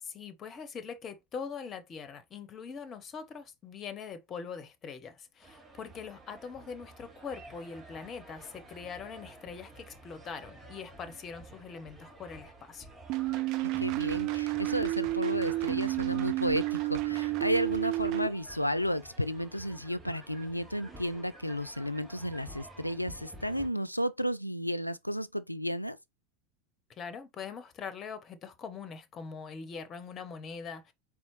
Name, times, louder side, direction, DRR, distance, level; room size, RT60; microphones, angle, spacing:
voice 1, 0.0-12.9 26.9-30.9, left 6 dB, 30° left, 0.7 m, -42 dB
sound 1, 5.4-23.7, right 1 dB, 15° right, 2.7 m, -50 dB
sound 2, 13.1-18.3, right 18 dB, 45° right, 0.3 m, -31 dB
voice 2, 13.8-26.0, equal, 90° left, 0.3 m, -32 dB
4.3 x 3.5 x 3.0 m
figure-of-eight pair, 85°, 0 cm